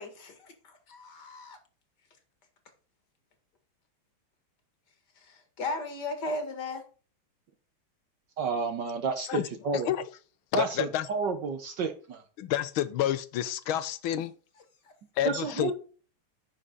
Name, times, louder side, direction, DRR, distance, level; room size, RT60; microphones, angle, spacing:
voice 1, 0.0-1.6 5.2-6.8 14.1-14.2 14.8-14.9, left 2 dB, 50° left, 2.5 m, -37 dB
voice 2, 8.4-9.9 10.5-12.2 15.2-15.7, right 5 dB, 60° right, 1.5 m, -31 dB
voice 3, 9.2-10.1 10.5-11.1 12.4-14.3 15.2-15.7, left 11 dB, 75° left, 1.5 m, -29 dB
9.9 x 6.3 x 4.0 m
omnidirectional pair, 2.4 m